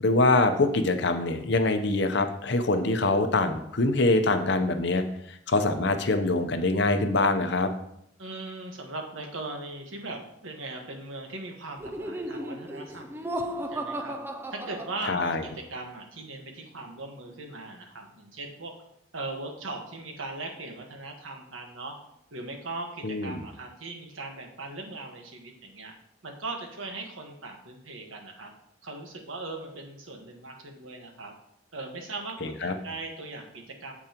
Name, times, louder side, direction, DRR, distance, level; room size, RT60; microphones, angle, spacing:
voice 1, 0.0-7.7 15.1-15.4 23.0-23.4 32.4-32.7, left 2 dB, 60° left, 8 dB, 0.7 m, -24 dB
voice 2, 8.2-14.2 14.5-18.7 19.1-22.0 22.3-25.9 26.2-28.5 28.8-31.3 31.7-33.9, right 2 dB, 85° right, 3 dB, 1.4 m, -39 dB
Laughter, 11.8-15.5, right 1 dB, 10° right, 0.4 m, -35 dB
8.6 x 7.2 x 3.0 m, 0.75 s
head